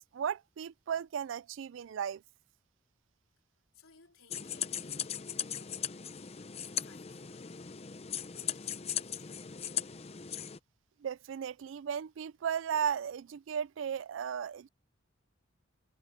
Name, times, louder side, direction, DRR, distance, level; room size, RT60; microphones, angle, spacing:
voice 1, 0.1-2.2 11.0-14.7, right 8 dB, 65° right, 0.3 m, -35 dB
voice 2, 3.7-6.2 6.6-7.8 8.3-9.5, left 6 dB, 90° left, 4.1 m, -61 dB
sound 1, 4.3-10.6, left 9 dB, 30° left, 0.6 m, -38 dB
head